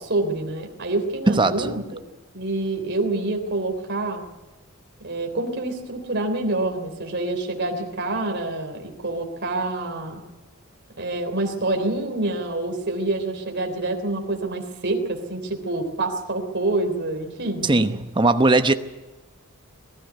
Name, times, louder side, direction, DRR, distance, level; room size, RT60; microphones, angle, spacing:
voice 1, 0.0-2.0 2.3-4.2 5.0-10.2 11.0-17.8, right 2 dB, 50° right, 3.4 m, -27 dB
voice 2, 1.3-1.7 17.6-18.7, right 2 dB, 20° right, 0.9 m, -19 dB
21.0 x 14.0 x 9.4 m
head